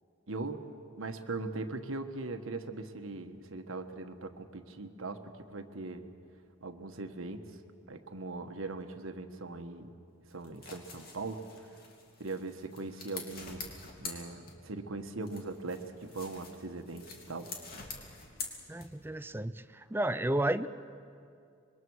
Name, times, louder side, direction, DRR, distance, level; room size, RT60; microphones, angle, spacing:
voice 1, 0.3-6.1 6.6-7.5 7.9-9.9 10.3-11.4 12.2-13.7 14.0-17.5, right 3 dB, 75° right, 7 dB, 1.4 m, -40 dB
sound 1, 10.3-14.9 15.2-19.2, left 4 dB, 45° left, 2.9 m, -46 dB
voice 2, 18.7-19.6 19.9-20.7, right 1 dB, 10° right, 12 dB, 0.5 m, -31 dB
26.0 x 22.5 x 6.4 m, 2.4 s
head